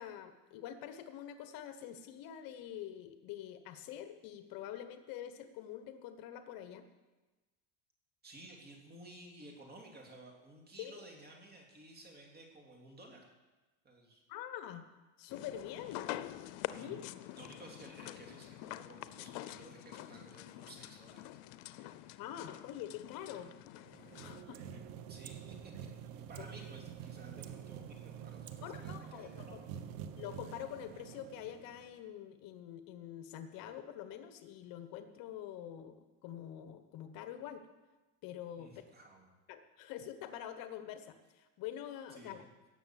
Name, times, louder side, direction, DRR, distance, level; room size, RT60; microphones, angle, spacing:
voice 1, 0.0-6.9 10.8-11.0 14.3-14.8 15.2-16.0 16.7-17.1 22.2-23.5 24.2-24.6 26.4-26.5 28.6-29.6 30.2-37.7 38.2-38.7 39.5-42.5, left 10 dB, 60° left, 9 dB, 1.1 m, -46 dB
voice 2, 8.2-13.3 13.8-14.2 16.7-17.0 17.4-22.0 24.5-25.7 26.1-29.9 38.6-39.3 42.1-42.5, right 2 dB, 25° right, 1 dB, 2.9 m, -55 dB
sound 1, 15.3-24.4, left 15 dB, 75° left, 0.8 m, -46 dB
sound 2, 23.8-32.1, right 9 dB, 60° right, 1.1 m, -47 dB
18.0 x 7.0 x 7.5 m, 1.2 s
cardioid pair, 140°, 39 cm